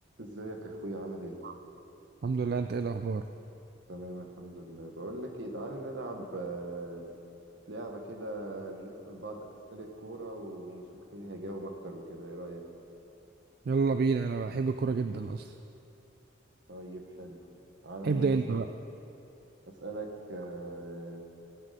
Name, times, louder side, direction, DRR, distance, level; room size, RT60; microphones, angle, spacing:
voice 1, 0.2-1.4 3.9-7.1 7.7-10.8 11.1-12.6 16.7-17.4 17.8-18.6 19.7-21.2, right 1 dB, 70° right, 2 dB, 1.5 m, -40 dB
voice 2, 2.2-3.2 13.7-15.5 18.0-18.7, right 4 dB, 50° right, 8 dB, 0.3 m, -29 dB
18.0 x 6.6 x 5.1 m, 2.9 s
head